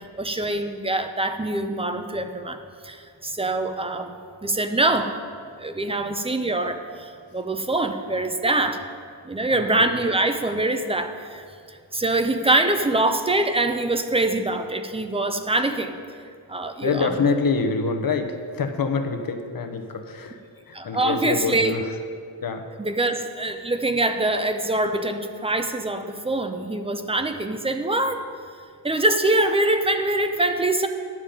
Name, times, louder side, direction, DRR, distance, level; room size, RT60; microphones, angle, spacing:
voice 1, 0.2-5.1 5.6-8.8 9.2-15.9 16.5-17.2 20.7-21.8 22.8-28.2 28.8-30.9, right 2 dB, 15° right, 7 dB, 0.4 m, -24 dB
voice 2, 9.5-9.9 16.8-21.9 22.4-22.7, left 4 dB, 55° left, 6 dB, 0.8 m, -26 dB
10.0 x 7.3 x 5.1 m, 2.2 s
wide cardioid pair, 170°, 43 cm